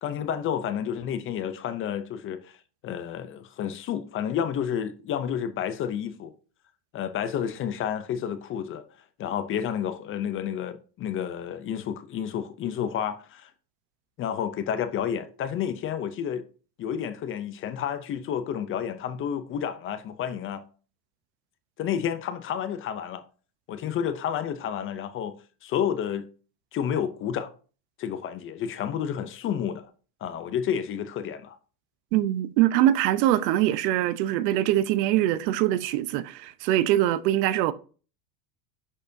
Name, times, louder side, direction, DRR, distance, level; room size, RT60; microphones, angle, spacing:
voice 1, 0.0-2.6 2.8-6.3 6.9-8.8 9.2-13.5 14.2-16.4 16.8-20.6 21.8-23.2 23.7-25.4 25.6-26.3 26.7-27.5 28.0-29.9 30.2-31.6, left 9 dB, 25° left, 0.5 m, -30 dB
voice 2, 32.1-37.7, right 13 dB, 85° right, 0.9 m, -23 dB
10.5 x 6.5 x 2.6 m
cardioid pair, 160°, 48 cm